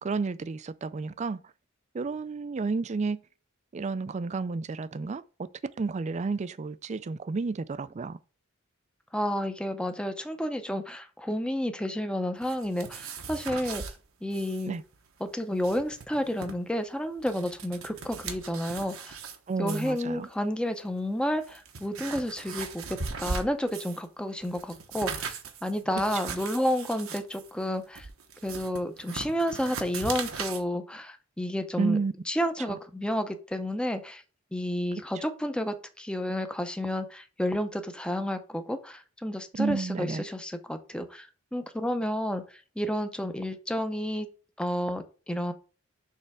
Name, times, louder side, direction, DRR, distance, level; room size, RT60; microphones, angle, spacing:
voice 1, 0.0-1.4 1.9-3.2 3.7-5.5 5.8-8.2 14.7-14.8 19.5-20.3 25.9-26.3 31.8-32.1 32.6-32.8 35.1-35.2 39.5-40.3, right 4 dB, 35° right, 0.4 m, -31 dB
voice 2, 9.1-13.8 14.2-14.8 15.2-19.2 19.6-22.9 23.2-25.3 25.6-28.1 28.4-32.0 32.3-34.2 34.5-41.3 41.5-42.4 42.8-44.3 44.6-45.5, equal, 5° left, 0.6 m, -31 dB
sound 1, 12.4-13.9 14.3-14.7 14.9-15.0 15.4-16.5 17.0-19.4 19.7-20.0 20.8-20.9 21.4-24.1 24.4-30.6, right 5 dB, 90° right, 1.1 m, -38 dB
6.6 x 3.3 x 4.7 m
head